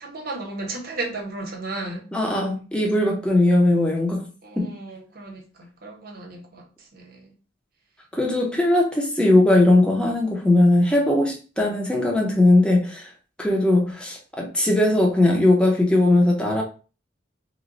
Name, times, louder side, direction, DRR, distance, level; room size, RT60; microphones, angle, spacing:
voice 1, 0.0-2.0 4.4-6.6 6.9-7.3, right 2 dB, 50° right, 0.9 m, -34 dB
voice 2, 2.1-4.2 4.6-4.7 8.1-13.1 13.4-16.6, left 1 dB, 5° left, 0.7 m, -19 dB
3.0 x 2.2 x 3.9 m
head